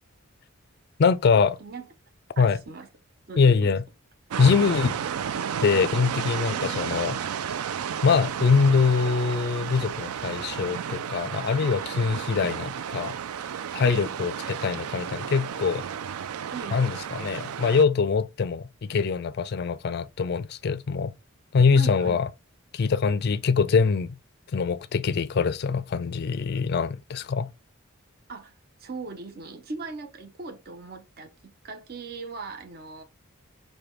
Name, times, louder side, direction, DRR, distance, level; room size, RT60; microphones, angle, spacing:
voice 1, 1.0-1.6 2.4-2.6 3.4-3.8 4.4-5.0 5.6-7.2 8.0-13.1 13.7-15.8 16.7-21.1 21.5-22.3 22.7-24.2 24.5-27.5, left 5 dB, 45° left, 0.3 m, -23 dB
voice 2, 2.4-2.9 3.3-3.8 13.8-14.1 16.5-16.8 21.8-22.2 28.3-33.0, right 4 dB, 45° right, 0.6 m, -39 dB
sound 1, 4.3-17.8, right 8 dB, 80° right, 0.4 m, -32 dB
5.0 x 2.2 x 4.4 m
head